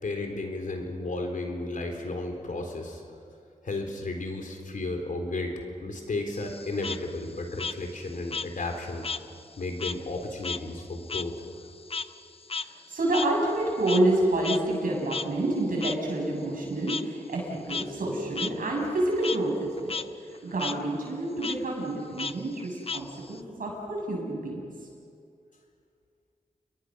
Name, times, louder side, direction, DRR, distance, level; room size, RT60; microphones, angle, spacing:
voice 1, 0.0-3.0 3.6-9.1 9.6-11.4, left 2 dB, 70° left, 3 dB, 4.0 m, -33 dB
Frog, 6.3-9.3 9.6-14.2 14.4-14.6 15.1-15.2 15.8-15.9 16.9-17.0 17.5-17.8 18.3-18.5 18.9-19.4 19.8-20.0 20.3-20.8 21.4-21.6 22.2-23.4, left 4 dB, 45° left, 0.8 m, -34 dB
voice 2, 12.6-20.0 20.2-24.6, right 1 dB, 80° right, -1 dB, 7.2 m, -28 dB
29.0 x 22.0 x 6.4 m, 2.4 s
cardioid pair, 55°, 14 cm